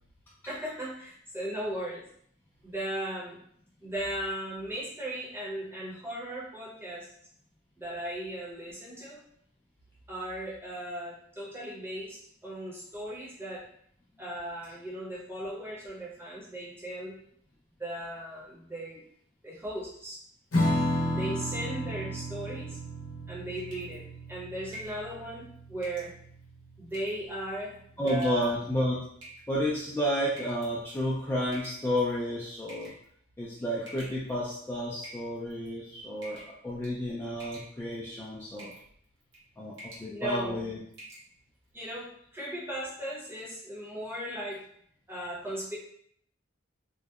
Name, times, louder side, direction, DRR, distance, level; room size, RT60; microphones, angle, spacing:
voice 1, 0.5-2.0 2.6-3.4 3.8-7.1 7.8-9.2 10.1-12.2 12.4-13.6 14.2-17.2 17.8-19.0 19.4-20.2 21.1-22.8 23.3-24.0 24.3-26.1 26.8-27.8 28.0-28.5 40.1-40.6 41.7-44.6 45.1-45.8, right 1 dB, 10° right, -6 dB, 0.7 m, -37 dB
Strum, 20.5-27.4, equal, 80° left, 0.7 m, -33 dB
sound 1, 23.6-24.0 24.7-25.0 25.8-26.1 26.9-27.3 28.0-28.5 29.2-29.7 30.4-30.7 31.5-32.1 32.7-33.0 33.9-34.5 35.0-35.7 36.2-36.6 36.8-37.1 37.4-38.0 38.6-38.9 39.2-39.4 39.7-40.1 40.4-40.5 40.9-41.3, equal, 65° right, 0.8 m, -47 dB
voice 2, 28.0-29.0 29.5-32.9 33.4-38.7 39.6-40.8, equal, 10° left, -7 dB, 0.3 m, -31 dB
2.7 x 2.0 x 2.3 m, 0.66 s
head